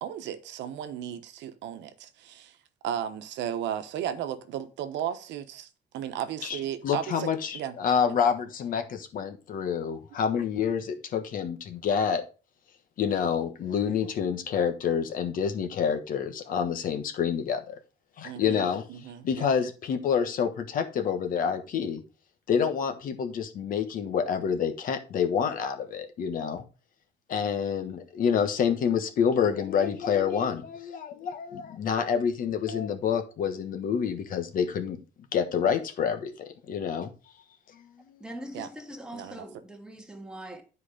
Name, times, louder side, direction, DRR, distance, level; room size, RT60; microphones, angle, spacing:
voice 1, 0.0-2.6 2.8-5.7 5.9-7.7 8.1-8.2 18.2-19.5 38.5-38.7 39.1-39.4, right 10 dB, 80° right, 1.1 m, -35 dB
voice 2, 6.4-12.2 13.0-17.8 18.2-18.8 19.2-22.0 22.5-26.6 27.3-35.0 35.3-37.1 37.7-38.2, left 7 dB, 50° left, 1.3 m, -28 dB
voice 3, 38.2-40.6, equal, 5° right, 1.6 m, -42 dB
10.5 x 4.8 x 4.9 m
cardioid pair, 165°, 18 cm